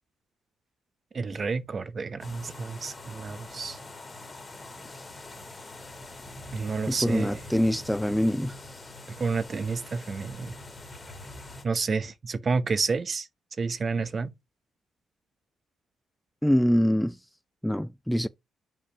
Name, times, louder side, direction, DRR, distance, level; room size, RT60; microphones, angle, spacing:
voice 1, 1.1-3.8 6.5-7.4 9.2-10.6 11.6-13.3 13.6-14.3, right 4 dB, 40° right, 0.8 m, -30 dB
sound 1, 2.2-11.6, left 2 dB, 25° left, 2.1 m, -44 dB
voice 2, 6.9-8.7 16.4-17.2 17.6-18.3, equal, ahead, 0.4 m, -25 dB
5.4 x 5.1 x 4.9 m
cardioid pair, 90°, 0 cm